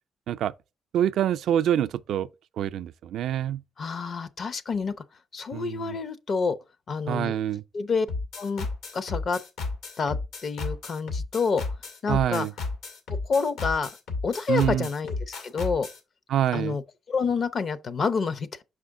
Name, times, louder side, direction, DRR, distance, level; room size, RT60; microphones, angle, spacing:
voice 1, 0.9-2.3 2.6-3.6 5.5-5.9 7.1-7.6 12.1-12.5 14.5-14.9 16.3-16.8, right 11 dB, 75° right, 0.3 m, -26 dB
voice 2, 3.8-4.9 5.3-6.6 6.9-7.3 7.7-8.1 8.4-8.7 8.9-9.4 10.0-11.6 12.0-12.5 13.2-13.9 14.2-15.2 15.4-15.9 16.5-16.8 17.1-18.6, left 5 dB, 50° left, 0.7 m, -28 dB
sound 1, 8.1-16.0, left 3 dB, 85° left, 1.8 m, -33 dB
6.3 x 4.9 x 3.6 m
cardioid pair, 90°, 0 cm